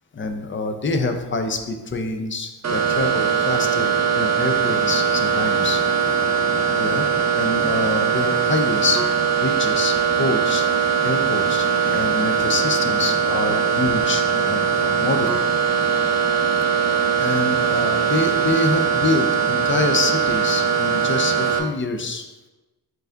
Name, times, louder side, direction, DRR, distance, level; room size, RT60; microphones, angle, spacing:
voice 1, 0.1-5.8 6.7-9.0 9.4-10.6 11.0-15.4 16.5-16.6 17.2-22.2, left 3 dB, 30° left, 6 dB, 0.4 m, -26 dB
sound 1, 2.6-21.6, right 7 dB, 40° right, 0.5 m, -21 dB
4.6 x 2.6 x 4.4 m, 1.1 s
wide cardioid pair, 140°, 42 cm